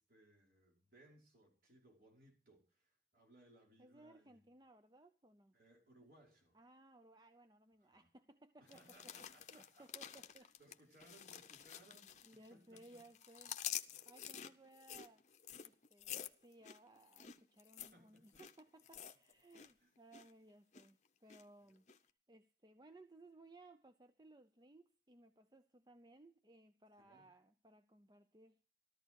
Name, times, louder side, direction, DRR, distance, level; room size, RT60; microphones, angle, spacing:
voice 1, 0.0-4.5 5.5-6.6 7.9-8.1 8.6-10.2 10.6-13.0 13.6-14.0 14.3-14.4 17.8-18.4 19.6-19.9 27.0-27.3, right 1 dB, 55° right, 5.3 m, -67 dB
voice 2, 3.8-5.5 6.5-10.5 12.3-13.6 14.1-15.3 15.6-28.7, right 2 dB, 25° right, 0.6 m, -62 dB
sound 1, 8.7-12.5 12.8-19.7 20.0-20.3 20.7-21.4 21.9-22.0, left 10 dB, 40° left, 0.8 m, -49 dB
14.0 x 13.5 x 4.7 m
head